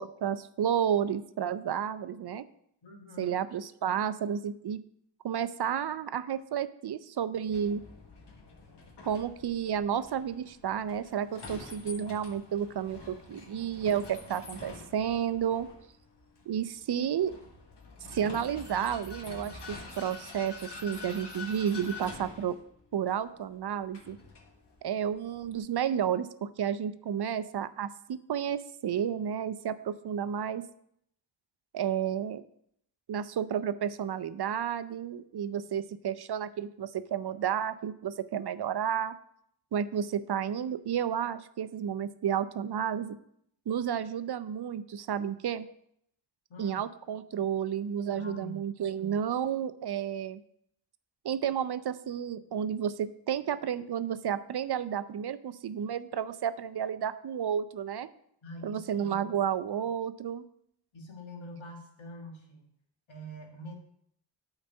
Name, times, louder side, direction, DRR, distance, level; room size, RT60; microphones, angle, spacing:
voice 1, 0.0-2.4 3.2-4.8 5.2-7.8 9.0-15.7 16.5-17.4 18.1-22.6 22.9-24.2 24.8-30.6 31.7-32.4 33.1-39.2 39.7-43.2 43.7-45.7 46.6-50.4 51.2-58.1 58.6-60.4, right 8 dB, 60° right, 14 dB, 0.5 m, -31 dB
voice 2, 2.8-3.4 46.5-46.8 48.1-48.7 58.4-59.3 60.9-62.7 63.1-63.7, left 1 dB, 80° left, 1 dB, 1.8 m, -45 dB
Vehicle, 7.5-25.6, left 3 dB, 60° left, 1.4 m, -47 dB
8.7 x 4.1 x 5.4 m, 0.71 s
cardioid pair, 60°, 46 cm